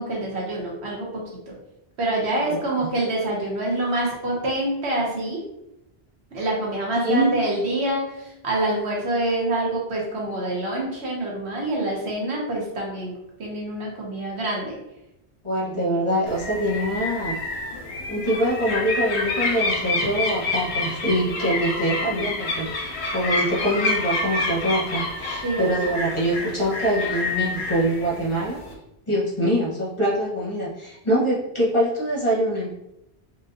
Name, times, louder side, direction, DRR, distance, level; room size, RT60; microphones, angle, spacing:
voice 1, 0.0-1.5 2.0-5.4 6.3-13.1 13.4-14.8 25.4-25.9, right 1 dB, 85° right, -3 dB, 1.3 m, -26 dB
voice 2, 2.4-2.9 7.0-7.5 15.4-17.4 18.1-28.6 29.1-32.7, right 1 dB, 30° left, -6 dB, 0.9 m, -24 dB
sound 1, 16.3-28.7, left 3 dB, 85° left, 1.0 m, -28 dB
4.5 x 2.6 x 2.6 m, 0.86 s
omnidirectional pair, 1.1 m